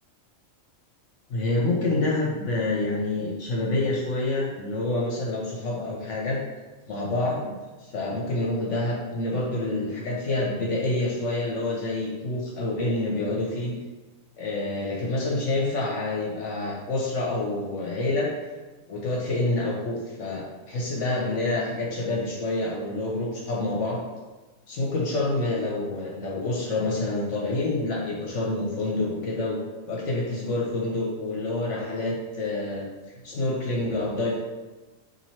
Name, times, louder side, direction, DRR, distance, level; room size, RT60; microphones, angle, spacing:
voice 1, 1.3-6.4 6.9-7.5 7.8-13.7 14.4-18.5 18.9-24.0 24.7-29.6 29.9-32.9 33.2-34.4, left 2 dB, 65° left, -3 dB, 0.9 m, -27 dB
2.9 x 2.7 x 4.2 m, 1.2 s
omnidirectional pair, 1.4 m